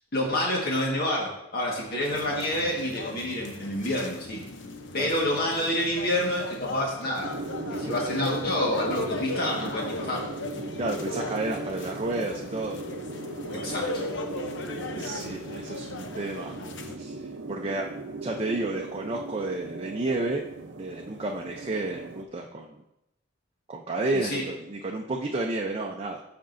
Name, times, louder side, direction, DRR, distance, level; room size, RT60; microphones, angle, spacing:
voice 1, 0.1-4.4 4.9-7.3 7.7-10.3 13.5-14.1 15.0-15.2 24.1-24.4, left 1 dB, 55° left, -2 dB, 1.6 m, -28 dB
sound 1, 2.1-16.9, left 2 dB, 75° left, 0.8 m, -37 dB
sound 2, 7.2-22.2, right 2 dB, 75° right, 0.7 m, -38 dB
voice 2, 10.8-12.8 15.0-16.5 17.0-17.9 18.2-20.4 20.8-22.8 23.7-26.2, right 2 dB, 30° right, 1 dB, 0.6 m, -31 dB
14.0 x 5.2 x 2.6 m, 0.87 s
head